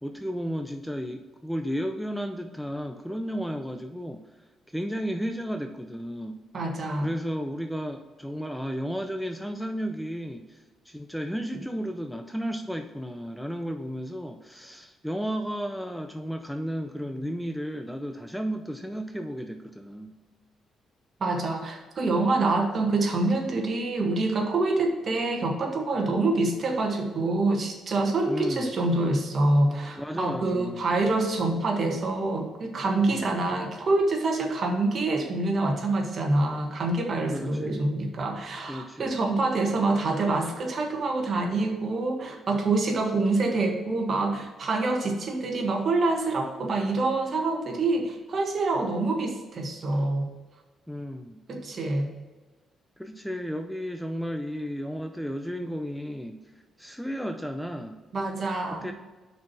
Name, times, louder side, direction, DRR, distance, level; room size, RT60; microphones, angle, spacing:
voice 1, 0.0-4.2 4.7-6.4 7.0-20.1 28.3-28.7 30.0-30.8 33.1-33.4 37.3-37.9 38.7-39.1 50.9-51.4 53.0-56.5 56.8-58.0 58.7-58.9, equal, ahead, 6 dB, 0.5 m, -33 dB
voice 2, 6.5-7.1 21.2-50.3 51.5-52.1 58.1-58.9, right 2 dB, 50° right, 2 dB, 1.5 m, -26 dB
5.9 x 4.6 x 6.1 m, 1.2 s
cardioid pair, 90°, 0 cm